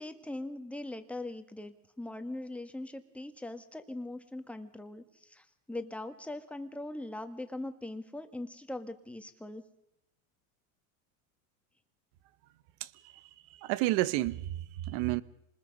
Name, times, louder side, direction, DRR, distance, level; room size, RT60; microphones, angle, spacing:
voice 1, 0.0-9.6, left 2 dB, 5° left, 1.7 m, -41 dB
voice 2, 12.8-15.2, right 17 dB, 60° right, 1.2 m, -32 dB
27.5 x 20.5 x 5.4 m
supercardioid pair, 130°, 42 cm